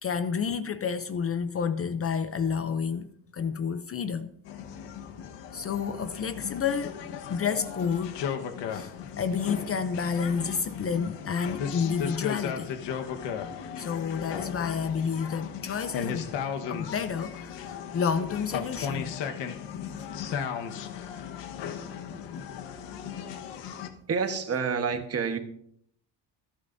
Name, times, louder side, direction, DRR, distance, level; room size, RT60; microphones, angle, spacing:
voice 1, 0.0-4.3 5.5-7.0 7.3-8.2 8.7-12.7 13.8-16.3 16.7-19.1, left 6 dB, 35° left, 0.6 m, -30 dB
sound 1, 4.5-23.9, left 7 dB, 85° left, 1.4 m, -36 dB
voice 2, 24.1-25.4, right 5 dB, 35° right, 1.3 m, -28 dB
26.0 x 8.8 x 2.7 m
cardioid pair, 145°, 42 cm